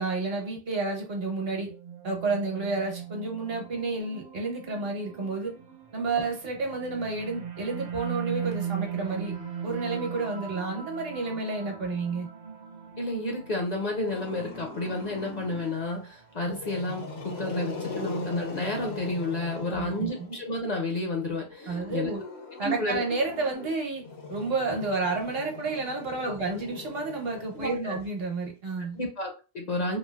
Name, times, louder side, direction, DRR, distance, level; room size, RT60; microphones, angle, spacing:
voice 1, 0.0-1.7 2.0-5.5 5.9-9.3 9.6-12.3 19.7-20.3 21.7-22.2 22.6-29.0, right 3 dB, 65° right, 1 dB, 1.1 m, -30 dB
sound 1, 1.4-16.7, right 8 dB, 50° right, 0.6 m, -39 dB
voice 2, 13.0-22.1 22.6-23.0 26.2-26.3 27.5-28.0 28.8-30.0, left 2 dB, 50° left, 1 dB, 0.6 m, -31 dB
Growling, 14.1-15.8 16.4-20.5 21.5-28.0, left 3 dB, 70° left, 1.0 m, -40 dB
3.1 x 2.7 x 2.2 m, 0.32 s
omnidirectional pair, 1.1 m